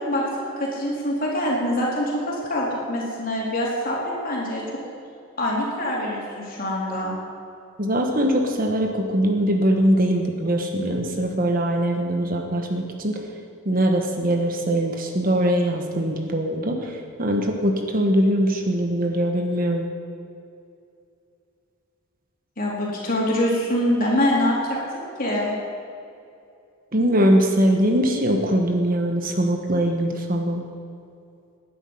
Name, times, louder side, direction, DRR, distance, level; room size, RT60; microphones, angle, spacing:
voice 1, 0.0-4.6 5.4-7.1 22.6-25.5, left 1 dB, 40° left, -4 dB, 3.9 m, -24 dB
voice 2, 7.8-13.2 13.6-19.9 26.9-30.6, right 1 dB, 40° right, 3 dB, 1.3 m, -22 dB
19.5 x 10.5 x 5.6 m, 2.5 s
head